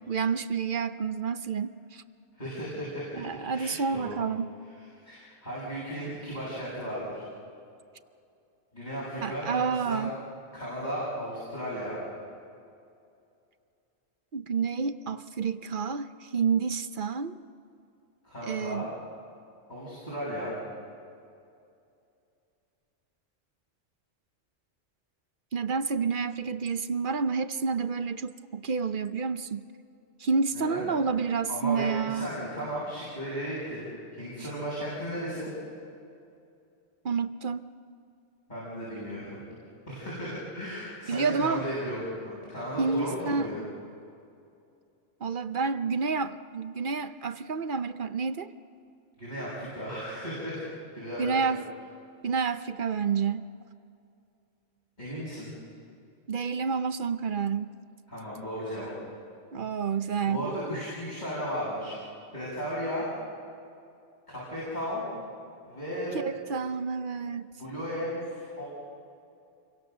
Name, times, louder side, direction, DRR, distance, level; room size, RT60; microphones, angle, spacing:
voice 1, 0.0-2.0 3.1-4.6 9.2-10.1 14.3-17.4 18.4-18.9 25.5-29.6 30.2-32.3 37.0-37.6 41.1-41.6 42.8-43.5 45.2-48.5 51.2-51.7 52.2-53.4 56.3-57.7 59.5-60.5 66.1-67.5, right 5 dB, 50° right, 11 dB, 0.8 m, -29 dB
voice 2, 2.3-3.3 3.5-4.2 4.8-7.2 8.7-10.1 10.5-12.0 18.2-18.9 19.7-20.6 30.5-30.9 31.5-35.5 38.5-39.4 39.9-43.6 49.2-50.6 50.9-51.3 55.0-55.5 58.1-58.9 60.2-62.0 62.3-63.1 64.3-65.2 65.7-66.2 67.6-68.6, equal, 40° left, -9 dB, 7.9 m, -35 dB
28.5 x 24.0 x 6.8 m, 2.5 s
omnidirectional pair, 1.2 m